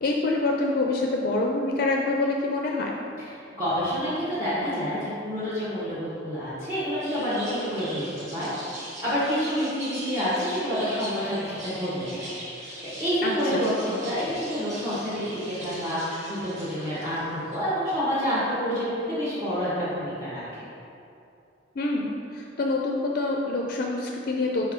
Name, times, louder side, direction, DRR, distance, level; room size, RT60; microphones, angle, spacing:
voice 1, 0.0-2.9 13.2-13.7 21.8-24.7, left 2 dB, 50° left, 0 dB, 0.4 m, -26 dB
voice 2, 3.6-8.1 8.3-8.5 9.0-12.3 12.5-20.4, equal, 20° right, -11 dB, 1.3 m, -28 dB
sound 1, 7.0-17.6, right 1 dB, 40° right, 1.3 m, -41 dB
4.6 x 4.4 x 5.0 m, 2.6 s
head